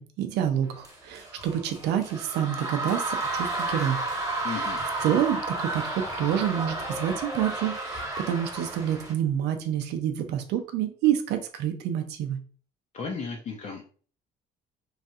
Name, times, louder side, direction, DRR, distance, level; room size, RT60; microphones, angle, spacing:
voice 1, 0.0-4.0 4.5-4.7 5.0-12.4, right 10 dB, 80° right, 7 dB, 0.5 m, -28 dB
sound 1, 0.8-9.1, right 2 dB, 20° right, 1.2 m, -32 dB
voice 2, 4.4-4.8 12.9-13.8, left 5 dB, 45° left, 0 dB, 0.6 m, -34 dB
3.1 x 2.4 x 2.7 m, 0.42 s
cardioid pair, 110°, 17 cm